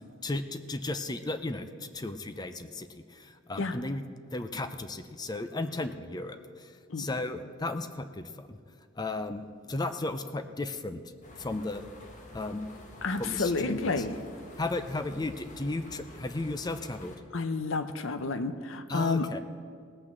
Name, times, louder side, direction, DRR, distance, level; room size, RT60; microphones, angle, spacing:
voice 1, 0.2-4.0 4.3-8.6 9.0-11.0 11.4-11.8 12.3-12.7 13.2-14.0 14.6-17.1 18.9-19.4, left 2 dB, 20° left, 9 dB, 0.5 m, -35 dB
sound 1, 11.2-17.2, left 1 dB, 40° left, 1.4 m, -49 dB
voice 2, 13.0-14.2 17.3-19.3, left 3 dB, 70° left, 10 dB, 0.7 m, -30 dB
18.0 x 6.1 x 7.5 m, 2.2 s
head